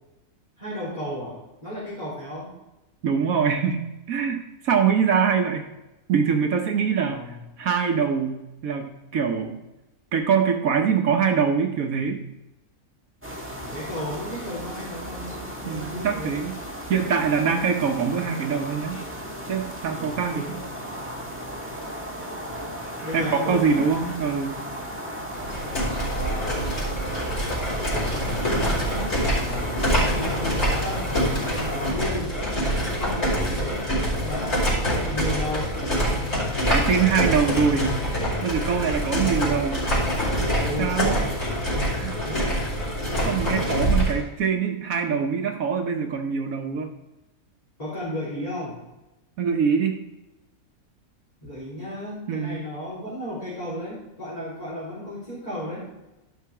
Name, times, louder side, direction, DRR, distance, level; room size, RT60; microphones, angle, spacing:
voice 1, 0.6-2.5 7.1-7.4 13.6-16.4 20.0-20.6 23.0-23.9 25.1-25.3 26.1-26.6 27.7-28.9 29.4-31.1 31.5-32.3 33.0-33.9 34.2-35.7 40.6-41.3 42.2-42.6 47.8-48.8 51.4-55.9, left 1 dB, 25° left, -10 dB, 3.4 m, -34 dB
voice 2, 3.0-5.7 6.1-9.6 10.1-12.2 15.7-16.5 16.9-19.0 19.5-20.6 23.1-24.5 36.7-37.9 38.4-39.8 40.6-41.2 42.0-42.2 43.2-46.9 49.4-50.0 52.3-52.6, right 6 dB, 70° right, 4 dB, 1.3 m, -24 dB
sound 1, 13.2-31.9, equal, 10° right, 1.4 m, -35 dB
sound 2, 25.3-44.2, equal, 60° left, 4.4 m, -25 dB
12.5 x 5.7 x 4.7 m, 0.97 s
omnidirectional pair, 1.5 m